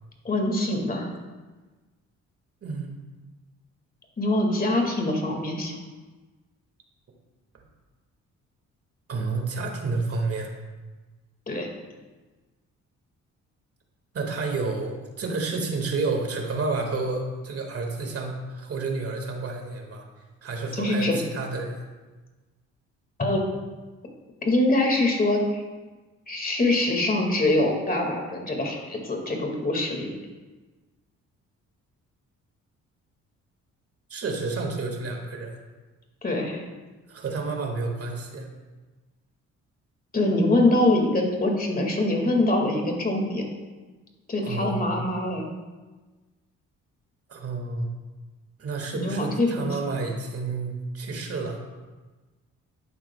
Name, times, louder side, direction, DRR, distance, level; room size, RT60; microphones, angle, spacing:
voice 1, 0.2-1.1 4.2-5.8 11.5-11.7 20.7-21.2 23.2-23.4 24.4-25.6 26.3-30.1 36.2-36.6 40.1-43.4 44.3-45.5 48.9-49.8, left 1 dB, 30° left, 2 dB, 1.9 m, -24 dB
voice 2, 2.6-3.0 9.1-10.5 14.1-20.1 20.4-21.8 34.1-35.6 37.1-38.5 44.4-44.9 47.3-47.9 48.6-51.6, right 3 dB, 50° right, 2 dB, 1.8 m, -30 dB
11.5 x 8.8 x 2.3 m, 1.3 s
cardioid pair, 90°, 30 cm